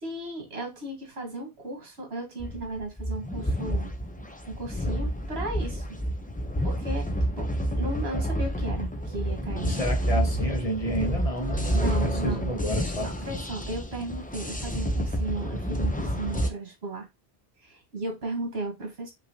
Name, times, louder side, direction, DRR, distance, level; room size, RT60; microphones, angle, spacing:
voice 1, 0.0-3.9 4.5-6.0 6.6-7.1 7.4-9.8 11.7-12.5 13.0-17.1 17.6-19.1, right 2 dB, 85° right, 1.9 m, -35 dB
sound 1, 2.4-16.5, equal, 10° left, 0.5 m, -29 dB
voice 2, 9.6-13.1, right 1 dB, 35° left, 1.2 m, -31 dB
5.5 x 3.0 x 2.8 m
omnidirectional pair, 1.0 m